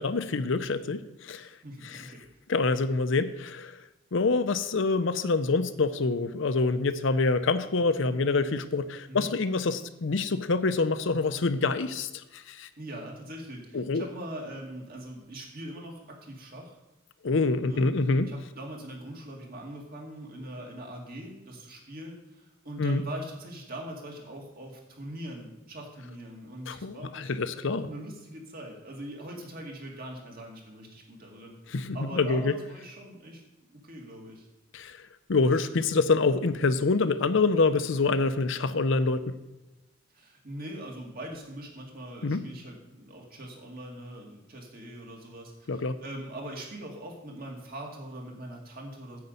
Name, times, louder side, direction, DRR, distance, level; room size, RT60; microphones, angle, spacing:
voice 1, 0.0-1.5 1.8-2.1 2.5-3.8 4.1-12.7 13.7-14.1 17.2-18.3 22.8-23.0 26.7-27.9 31.7-32.5 34.7-35.0 35.3-39.4 42.2-42.4 45.7-46.0, left 3 dB, 65° left, 12 dB, 0.6 m, -26 dB
voice 2, 1.6-2.2 9.1-9.3 12.8-16.8 17.6-17.9 18.3-31.5 31.9-33.4 33.7-34.5 40.1-49.2, right 1 dB, 50° right, 0 dB, 2.4 m, -42 dB
9.4 x 5.3 x 8.1 m, 1.0 s
head